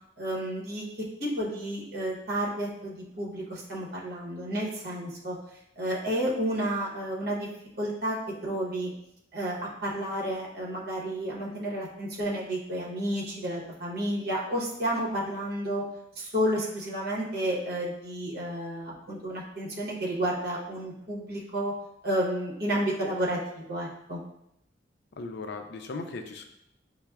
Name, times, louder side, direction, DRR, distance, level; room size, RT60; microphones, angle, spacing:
voice 1, 0.2-0.8 1.2-5.4 5.8-7.5 7.8-8.2 8.4-8.9 9.3-15.8 16.2-21.7 22.0-23.4 23.7-24.2, right 1 dB, 60° right, -4 dB, 0.9 m, -31 dB
voice 2, 25.2-26.4, left 3 dB, 65° left, 5 dB, 0.4 m, -37 dB
5.6 x 2.1 x 2.3 m, 0.80 s
head